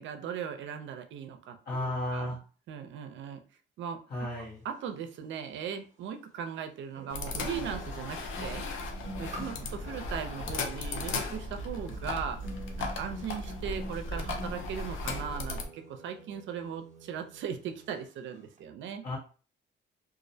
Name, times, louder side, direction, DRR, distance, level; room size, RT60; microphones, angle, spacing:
voice 1, 0.0-2.4 2.7-3.4 3.8-4.3 4.6-8.6 9.2-12.4 12.8-19.0, right 8 dB, 70° right, 6 dB, 0.5 m, -38 dB
voice 2, 1.6-2.4 4.1-4.6 19.0-19.2, left 1 dB, 55° left, -5 dB, 1.0 m, -33 dB
sound 1, 5.6-5.7 7.0-18.1 18.3-18.6, equal, 40° right, 0.7 m, -48 dB
sound 2, 7.1-15.7, left 2 dB, 80° left, 0.5 m, -36 dB
2.4 x 2.0 x 2.6 m, 0.37 s
cardioid pair, 90°, 20 cm